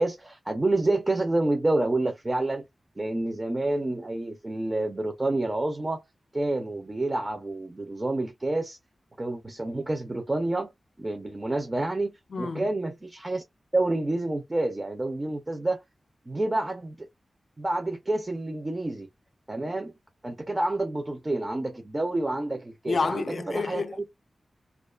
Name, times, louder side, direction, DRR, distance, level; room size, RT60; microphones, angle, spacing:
voice 1, 0.0-2.6 3.0-6.0 6.3-8.8 9.2-10.7 11.0-13.4 13.7-15.8 16.3-17.1 17.6-19.1 19.5-19.9 20.2-23.9, right 2 dB, 20° right, 0.4 m, -28 dB
voice 2, 12.3-12.7 22.9-24.1, left 4 dB, 55° left, 0.4 m, -29 dB
2.4 x 2.2 x 2.3 m
wide cardioid pair, 135°, 0 cm